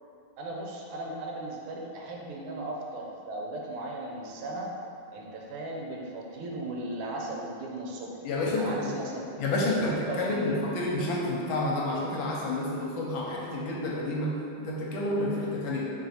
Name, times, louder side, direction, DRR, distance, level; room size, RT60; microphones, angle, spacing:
voice 1, 0.4-4.7 5.1-8.1 8.5-9.3 9.6-10.5, right 2 dB, 80° right, -1 dB, 1.4 m, -37 dB
voice 2, 8.2-9.0 9.4-15.9, left 2 dB, 80° left, -3 dB, 1.4 m, -29 dB
3.4 x 2.5 x 4.1 m, 2.7 s
omnidirectional pair, 2.3 m